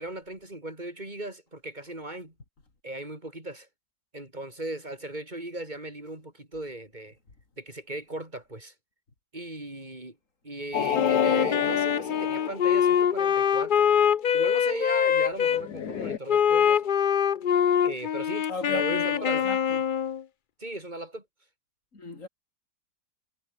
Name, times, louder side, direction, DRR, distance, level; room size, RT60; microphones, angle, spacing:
voice 1, 0.0-2.3 2.8-3.7 4.1-7.2 7.6-8.7 9.3-10.2 10.4-13.8 14.3-16.9 17.8-19.5 20.6-21.3, right 1 dB, 25° right, 5.6 m, -37 dB
sound 1, 10.7-13.4 15.5-16.2, left 8 dB, 65° left, 1.8 m, -30 dB
Wind instrument woodwind instrument, 10.9-15.6 16.3-20.2, left 8 dB, 85° left, 0.4 m, -24 dB
voice 2, 18.5-19.8 21.9-22.3, left 3 dB, 45° left, 4.0 m, -36 dB
omnidirectional pair, 1.8 m